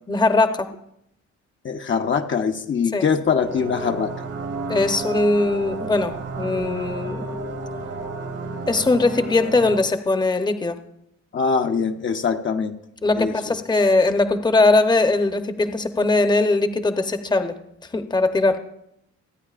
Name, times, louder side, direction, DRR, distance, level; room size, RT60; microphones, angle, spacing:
voice 1, 0.1-0.7 2.9-3.0 4.7-7.3 8.7-10.8 13.0-17.6 17.9-18.6, left 3 dB, 15° left, 8 dB, 0.9 m, -20 dB
voice 2, 1.6-4.1 11.3-12.7 13.2-13.3, left 6 dB, 40° left, 4 dB, 0.8 m, -22 dB
sound 1, 3.4-9.8, right 3 dB, 50° right, 1.3 m, -32 dB
27.5 x 9.3 x 2.5 m, 0.78 s
cardioid pair, 90°, 30 cm